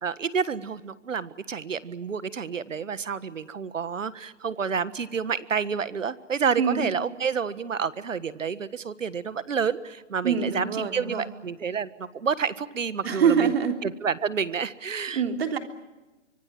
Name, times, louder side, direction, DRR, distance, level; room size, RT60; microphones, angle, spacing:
voice 1, 0.0-13.5 13.8-15.2, right 6 dB, 90° right, 16 dB, 1.6 m, -29 dB
voice 2, 6.6-6.9 10.2-11.3 13.0-13.8 15.1-15.6, right 6 dB, 55° right, 6 dB, 3.4 m, -24 dB
25.0 x 24.0 x 7.5 m, 1.1 s
hypercardioid pair, 160°, 37 cm